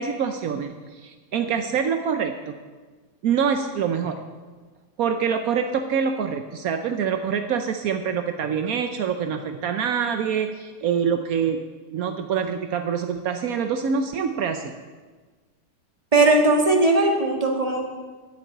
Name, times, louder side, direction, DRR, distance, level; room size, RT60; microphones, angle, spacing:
voice 1, 0.0-2.5 3.2-4.2 5.0-11.6 11.9-14.7, right 7 dB, 75° right, 7 dB, 0.8 m, -25 dB
voice 2, 16.1-17.9, right 2 dB, 20° right, 1 dB, 1.7 m, -18 dB
10.5 x 8.6 x 9.2 m, 1.4 s
omnidirectional pair, 2.4 m